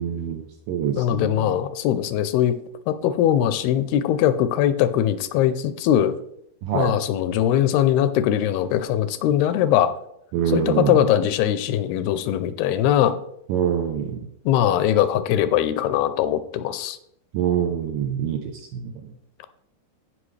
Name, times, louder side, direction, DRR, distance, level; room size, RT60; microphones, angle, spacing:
voice 1, 0.0-1.5 6.6-7.0 10.3-11.0 13.5-14.3 17.3-19.1, right 8 dB, 75° right, 5 dB, 2.1 m, -25 dB
voice 2, 0.9-2.6 2.9-6.2 6.7-9.9 10.5-13.2 14.5-17.0, left 11 dB, 80° left, 12 dB, 2.4 m, -21 dB
16.0 x 5.5 x 3.2 m, 0.75 s
omnidirectional pair, 4.6 m